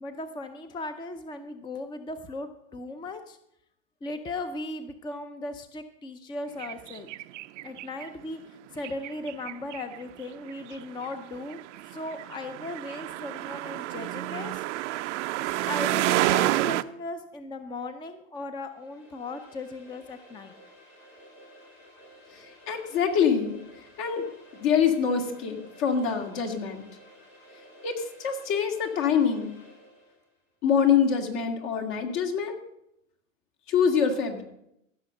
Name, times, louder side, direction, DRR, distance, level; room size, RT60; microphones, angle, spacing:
voice 1, 0.0-3.4 4.0-7.1 7.6-11.6 11.9-14.6 15.4-20.6, left 2 dB, 10° left, 10 dB, 0.5 m, -37 dB
sound 1, 6.6-8.1 8.8-10.1 10.5-16.8, right 16 dB, 65° right, 0.6 m, -29 dB
sound 2, 18.6-30.3, equal, 85° left, 5.8 m, -53 dB
voice 2, 22.3-23.6 24.0-24.2 24.6-26.8 27.8-29.6 30.6-32.6 33.7-34.4, left 7 dB, 55° left, 4 dB, 2.3 m, -25 dB
15.0 x 6.3 x 6.5 m, 0.80 s
hypercardioid pair, 115°, 38 cm